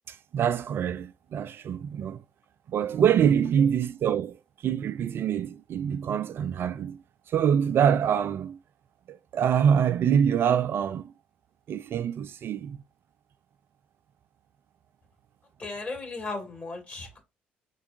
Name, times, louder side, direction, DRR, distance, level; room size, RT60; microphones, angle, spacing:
voice 1, 0.1-2.2 2.7-7.0 7.3-8.6 9.1-11.1 11.7-12.8, right 8 dB, 50° right, 0.4 m, -25 dB
voice 2, 15.6-17.2, left 3 dB, 30° left, 2.4 m, -36 dB
4.5 x 4.4 x 2.6 m
hypercardioid pair, 50°, 5 cm